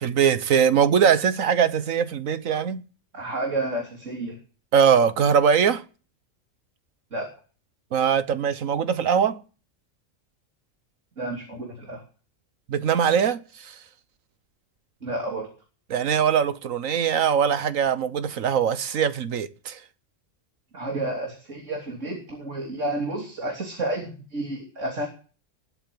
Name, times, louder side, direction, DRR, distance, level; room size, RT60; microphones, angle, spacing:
voice 1, 0.0-2.8 4.7-5.8 7.9-9.4 12.7-13.7 15.9-19.8, right 7 dB, 85° right, 1.5 m, -21 dB
voice 2, 3.1-4.4 7.1-7.3 11.2-12.0 15.0-15.5 20.7-25.1, right 2 dB, 70° right, 3.6 m, -30 dB
20.5 x 8.6 x 7.6 m
omnidirectional pair, 1.3 m